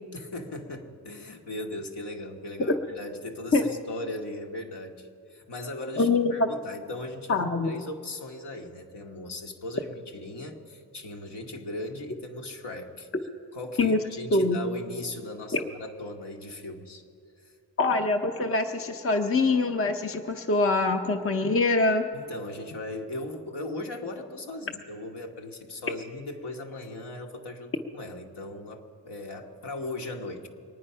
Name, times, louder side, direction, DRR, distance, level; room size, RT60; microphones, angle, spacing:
voice 1, 0.1-13.1 13.5-17.0 17.4-17.5 22.1-30.5, left 2 dB, 70° left, 2 dB, 1.4 m, -38 dB
voice 2, 6.0-6.5 7.3-7.7 13.8-14.0 14.3-14.6 15.5-15.6 17.8-22.1, left 3 dB, 30° left, 5 dB, 0.8 m, -24 dB
23.5 x 9.5 x 5.6 m, 2.4 s
wide cardioid pair, 110°, 42 cm